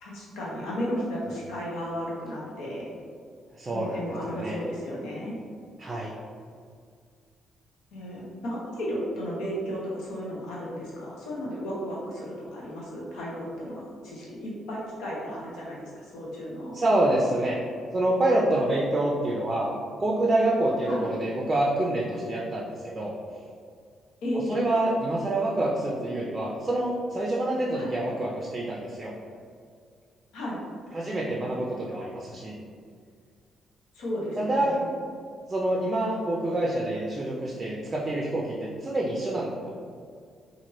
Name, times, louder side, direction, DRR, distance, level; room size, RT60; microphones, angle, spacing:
voice 1, 0.0-2.9 3.7-5.4 7.9-16.8 20.8-21.1 24.2-24.6 27.7-27.9 30.3-30.6 33.9-34.8, equal, 90° left, -5 dB, 0.8 m, -34 dB
voice 2, 3.6-4.6 5.8-6.1 16.7-17.6 17.9-23.1 24.5-29.1 30.9-32.6 34.4-34.8 35.5-39.7, right 1 dB, 30° right, -2 dB, 0.4 m, -27 dB
2.8 x 2.5 x 3.0 m, 2.1 s
cardioid pair, 90°, 0 cm